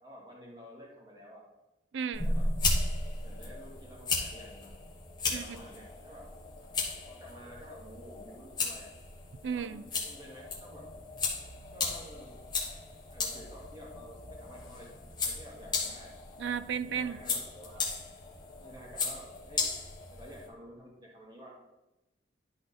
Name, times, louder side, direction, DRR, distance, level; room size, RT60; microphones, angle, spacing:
voice 1, 0.0-1.4 2.1-2.5 3.2-4.7 5.2-6.3 7.1-8.9 9.5-10.8 11.7-12.3 13.1-14.9 15.2-16.1 16.9-18.0 18.6-19.6 20.1-21.5, equal, 20° right, -4 dB, 2.2 m, -50 dB
voice 2, 1.9-2.3 5.3-5.6 9.4-9.8 16.4-17.2, right 7 dB, 75° right, 14 dB, 0.4 m, -34 dB
sound 1, 2.1-20.5, left 3 dB, 20° left, 1.4 m, -36 dB
11.5 x 4.3 x 4.2 m, 0.96 s
head